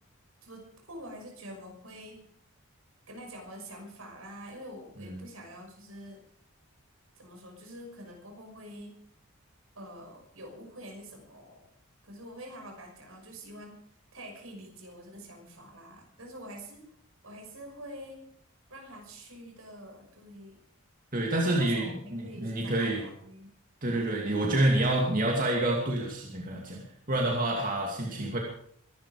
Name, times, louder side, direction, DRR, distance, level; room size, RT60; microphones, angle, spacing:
voice 1, 0.4-2.2 3.1-6.2 7.1-9.0 9.7-11.7 12.0-13.8 14.1-16.9 17.2-18.3 18.7-20.6 21.4-23.5, equal, 75° right, 2 dB, 6.1 m, -46 dB
voice 2, 21.1-23.1 23.8-28.4, right 1 dB, 40° right, -1 dB, 2.6 m, -28 dB
23.0 x 12.0 x 5.0 m, 0.64 s
head